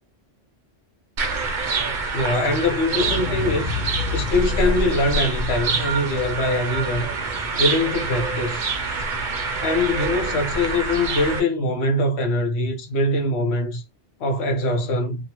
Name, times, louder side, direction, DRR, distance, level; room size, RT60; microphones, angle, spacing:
sound 1, 1.2-11.4, right 4 dB, 50° right, 0.7 m, -26 dB
voice 1, 2.1-3.8 4.1-7.1 7.6-8.7 9.6-13.8 14.2-15.2, left 2 dB, 65° left, 1.1 m, -23 dB
Explosion, 2.9-9.0 9.3-9.4, left 4 dB, 85° left, 0.9 m, -32 dB
2.8 x 2.4 x 2.9 m
omnidirectional pair, 1.2 m